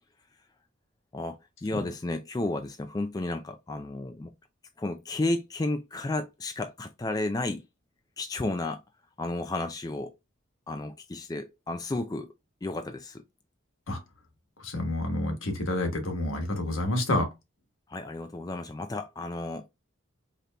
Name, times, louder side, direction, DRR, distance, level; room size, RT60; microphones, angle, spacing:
voice 1, 1.1-4.3 4.8-7.7 8.2-8.8 9.2-10.2 10.7-12.3 12.6-13.2 17.9-19.7, left 2 dB, 20° left, 0.3 m, -32 dB
voice 2, 14.6-17.3, left 1 dB, 75° left, 1.3 m, -29 dB
5.0 x 2.9 x 2.3 m
head